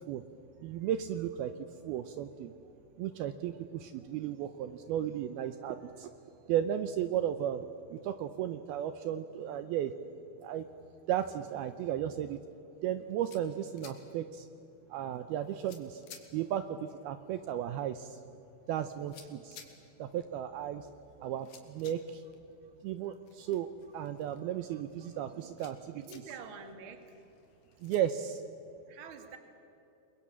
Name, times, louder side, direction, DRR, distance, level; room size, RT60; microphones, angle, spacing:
voice 1, 0.6-1.5 1.8-2.5 3.0-6.1 6.5-9.9 10.4-10.7 11.1-12.4 12.8-14.5 14.9-16.0 16.3-18.2 18.7-19.6 20.0-20.9 21.2-22.2 22.8-26.0 27.8-28.4, right 10 dB, 80° right, 10 dB, 2.5 m, -35 dB
sound 1, 12.9-28.0, left 6 dB, 55° left, 3.6 m, -59 dB
voice 2, 25.9-27.2 28.9-29.4, right 5 dB, 40° right, 6 dB, 2.3 m, -47 dB
30.0 x 22.5 x 7.5 m, 2.9 s
omnidirectional pair, 4.9 m